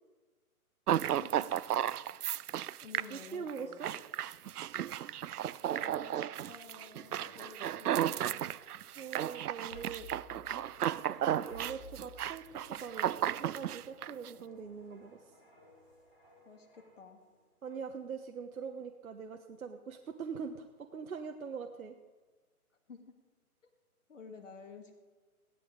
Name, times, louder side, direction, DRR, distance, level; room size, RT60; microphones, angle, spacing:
sound 1, 0.9-14.3, right 11 dB, 85° right, 0.6 m, -34 dB
voice 1, 1.1-1.5 1.8-2.1 2.8-3.8 5.7-8.5 16.5-17.2 22.9-23.0 24.1-25.0, left 5 dB, 55° left, 3 dB, 2.0 m, -52 dB
voice 2, 3.1-3.9 9.0-10.1 10.5-15.3 17.6-22.0, right 6 dB, 65° right, 5 dB, 1.2 m, -43 dB
sound 2, 6.4-17.3 17.7-17.9, equal, 5° left, 1.1 m, -58 dB
16.5 x 11.5 x 5.0 m, 1.4 s
hypercardioid pair, 175°, 44 cm